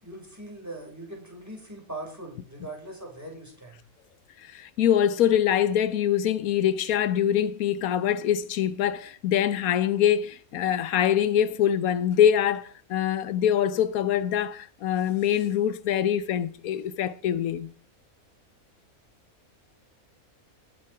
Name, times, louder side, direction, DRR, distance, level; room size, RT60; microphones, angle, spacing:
voice 1, 0.0-3.8, right 1 dB, 10° right, 5.5 m, -41 dB
voice 2, 4.4-17.7, left 10 dB, 85° left, 1.2 m, -24 dB
19.5 x 7.6 x 4.8 m
omnidirectional pair, 1.5 m